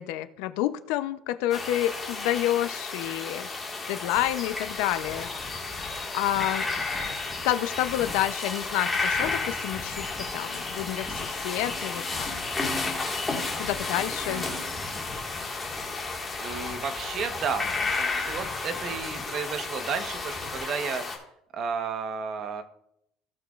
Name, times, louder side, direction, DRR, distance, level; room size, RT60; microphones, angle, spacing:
voice 1, 0.0-3.5 3.9-5.3 5.8-6.6 7.4-12.3 13.6-14.5, left 14 dB, 75° left, 12 dB, 0.6 m, -29 dB
sound 1, 1.5-21.2, left 3 dB, 15° left, 1.8 m, -32 dB
sound 2, 4.1-20.6, left 1 dB, ahead, 1.7 m, -44 dB
voice 2, 14.3-14.6 16.4-21.1 21.5-22.6, right 6 dB, 40° right, 8 dB, 1.1 m, -33 dB
16.5 x 6.0 x 2.4 m, 0.74 s
cardioid pair, 145°, 0 cm